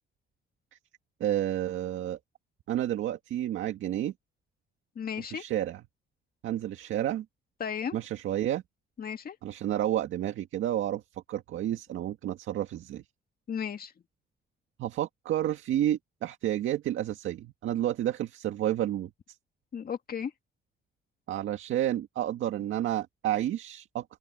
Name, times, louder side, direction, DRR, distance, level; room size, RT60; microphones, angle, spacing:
voice 1, 1.2-2.2 2.7-4.1 5.3-5.8 6.4-7.3 7.9-8.6 9.4-11.0 11.3-13.0 14.8-19.1 21.3-24.2, right 12 dB, 80° right, 1.9 m, -30 dB
voice 2, 5.0-5.4 7.6-8.0 9.0-9.4 13.5-13.9 19.7-20.3, left 7 dB, 50° left, 2.2 m, -34 dB
open air
cardioid pair, 90°, 20 cm